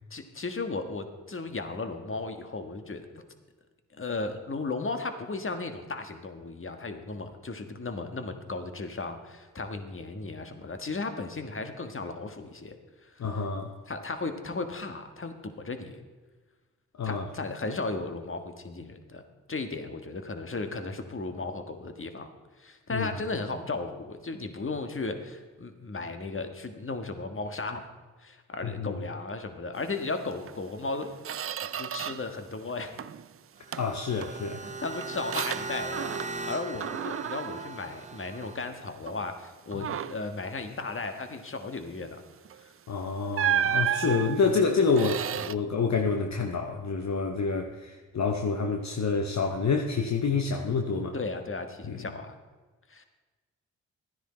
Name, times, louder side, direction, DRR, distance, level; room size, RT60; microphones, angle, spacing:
voice 1, 0.1-3.1 3.9-12.8 13.0-13.3 13.9-16.0 17.0-19.2 19.5-22.3 22.6-27.9 28.2-31.1 31.6-33.0 34.6-36.1 36.4-42.2 42.6-42.7 51.1-52.4 52.9-53.1, left 3 dB, 40° left, 7 dB, 1.5 m, -35 dB
voice 2, 13.2-13.7 17.0-17.2 22.9-23.1 28.6-29.0 33.8-34.6 39.7-39.9 42.9-51.1 51.8-52.1, left 4 dB, 55° left, 4 dB, 1.0 m, -28 dB
Squeak, 30.4-30.6 30.9-32.4 32.7-33.3 33.7-36.5 36.8-38.6 39.1-39.3 39.7-40.3 42.4-42.6 43.3-45.5, right 9 dB, 40° right, 0.4 m, -33 dB
sound 1, 33.6-38.7, right 3 dB, 20° right, 0.8 m, -39 dB
13.0 x 10.0 x 4.3 m, 1.3 s
supercardioid pair, 45°, 34 cm